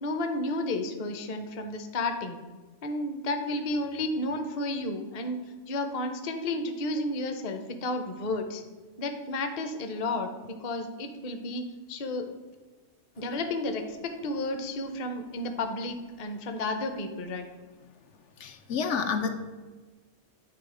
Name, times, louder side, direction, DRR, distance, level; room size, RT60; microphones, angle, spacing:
voice 1, 0.0-2.4 2.8-5.4 5.7-8.6 9.0-12.3 13.2-17.4, left 2 dB, 40° left, 6 dB, 0.6 m, -32 dB
voice 2, 18.4-19.3, left 6 dB, 75° left, 6 dB, 0.9 m, -29 dB
8.9 x 3.1 x 4.8 m, 1.3 s
omnidirectional pair, 1.3 m